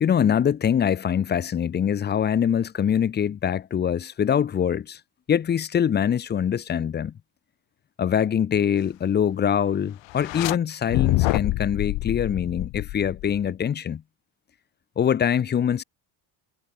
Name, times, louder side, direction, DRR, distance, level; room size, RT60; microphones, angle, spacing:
voice 1, 0.0-5.0 5.3-7.1 8.0-14.0 15.0-15.8, left 8 dB, 20° left, 0.6 m, -23 dB
sound 1, 10.1-10.6 10.9-13.5, left 20 dB, 70° left, 1.5 m, -26 dB
cardioid pair, 165°, 47 cm